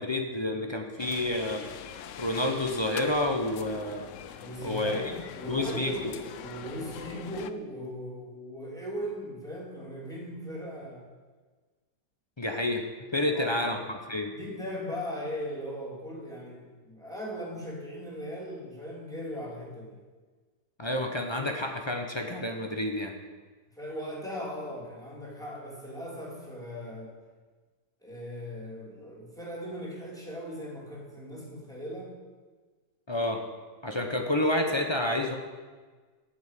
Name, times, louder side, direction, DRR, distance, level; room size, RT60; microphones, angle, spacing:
voice 1, 0.0-1.7 2.2-4.1 4.6-5.1 5.5-5.9 12.4-12.9 13.1-14.3 20.8-23.1 33.1-33.5 33.8-35.4, left 1 dB, 25° left, 3 dB, 0.6 m, -29 dB
sound 1, 1.0-7.5, left 10 dB, 70° left, 0.7 m, -43 dB
voice 2, 4.4-11.0 13.2-13.6 14.3-20.0 23.7-27.2 28.0-32.1, equal, ahead, -5 dB, 2.7 m, -38 dB
8.9 x 7.0 x 8.1 m, 1.4 s
omnidirectional pair, 1.9 m